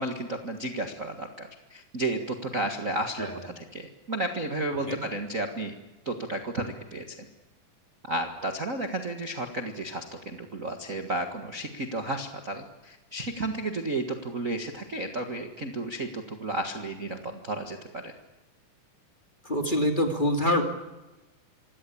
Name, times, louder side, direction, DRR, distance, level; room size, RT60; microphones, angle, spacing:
voice 1, 0.0-3.3 3.5-5.7 6.0-7.1 8.0-18.1, right 2 dB, 35° right, 4 dB, 1.4 m, -32 dB
voice 2, 19.4-20.6, left 1 dB, 15° left, 4 dB, 2.2 m, -25 dB
26.0 x 17.5 x 8.6 m, 1.1 s
omnidirectional pair, 3.8 m